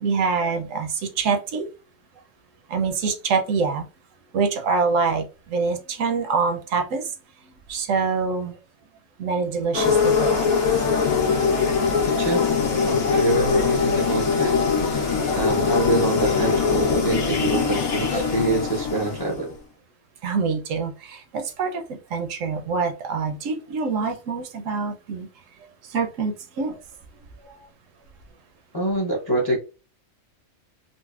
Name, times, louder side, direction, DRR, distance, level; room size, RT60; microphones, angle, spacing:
voice 1, 0.0-1.7 2.7-3.9 4.3-5.3 5.5-7.1 7.7-8.6 9.2-10.4 20.2-25.3 25.9-26.7 27.4-27.6, right 5 dB, 75° right, 5 dB, 1.0 m, -25 dB
sound 1, 9.7-19.5, left 5 dB, 85° left, 1.3 m, -22 dB
voice 2, 12.1-14.5 15.3-19.5 28.7-29.6, right 2 dB, 35° left, 0 dB, 0.3 m, -25 dB
3.9 x 2.1 x 2.3 m, 0.32 s
omnidirectional pair, 1.4 m